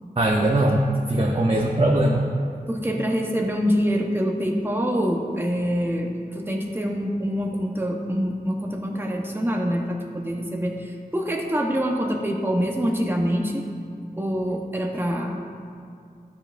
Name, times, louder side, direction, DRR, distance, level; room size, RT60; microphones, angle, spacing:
voice 1, 0.2-2.2, right 1 dB, 35° right, -2 dB, 0.8 m, -20 dB
voice 2, 2.7-13.6 14.2-15.4, equal, 15° right, 0 dB, 1.0 m, -25 dB
12.5 x 7.1 x 2.6 m, 2.4 s
wide cardioid pair, 45°, 16 cm